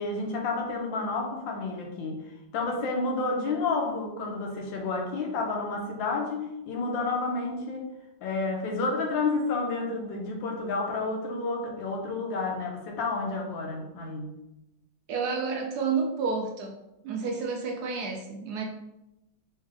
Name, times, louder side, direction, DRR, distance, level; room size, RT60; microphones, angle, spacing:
voice 1, 0.0-2.2 2.5-7.9 8.2-14.3, left 3 dB, 80° left, 1 dB, 1.5 m, -30 dB
voice 2, 15.1-16.8 17.0-18.6, right 5 dB, 70° right, 2 dB, 1.0 m, -30 dB
3.9 x 3.3 x 3.5 m, 0.91 s
omnidirectional pair, 2.0 m